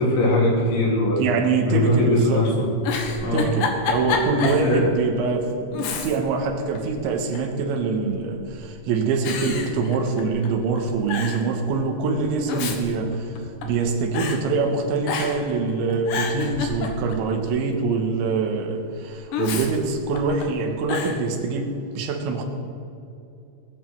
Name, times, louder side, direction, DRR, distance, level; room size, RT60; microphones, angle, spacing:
voice 1, 0.0-1.2 1.7-2.7 3.2-3.5 4.4-4.9, left 1 dB, 80° left, -3 dB, 5.7 m, -21 dB
voice 2, 1.2-2.4 3.3-13.4 13.6-22.4, right 4 dB, 80° right, 4 dB, 3.7 m, -24 dB
Giggle, 2.7-4.7 5.1-5.2 5.7-6.4 6.8-7.6 8.3-8.7 9.2-10.5 10.7-10.8 11.1-11.5 12.3-13.8 14.1-14.4 15.0-15.5 15.9-17.3 19.3-20.4 20.9-21.2, left 5 dB, 65° left, 2.5 m, -28 dB
21.0 x 10.0 x 4.7 m, 2.8 s
omnidirectional pair, 5.3 m